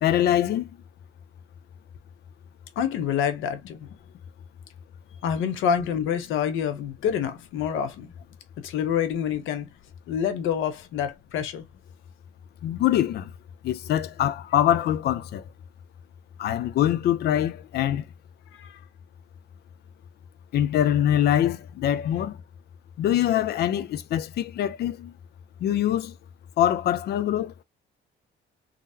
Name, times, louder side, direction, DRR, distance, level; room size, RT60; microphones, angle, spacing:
voice 1, 0.0-0.7 12.6-13.3 13.6-15.4 16.4-18.0 20.5-22.4 23.0-25.1 25.6-26.1 26.6-27.5, left 11 dB, 55° left, 0.4 m, -24 dB
voice 2, 2.8-3.9 5.2-8.1 8.6-9.7 10.1-11.6 18.6-18.8, left 8 dB, 85° left, 0.8 m, -27 dB
3.7 x 2.0 x 2.6 m
cardioid pair, 160°, 20 cm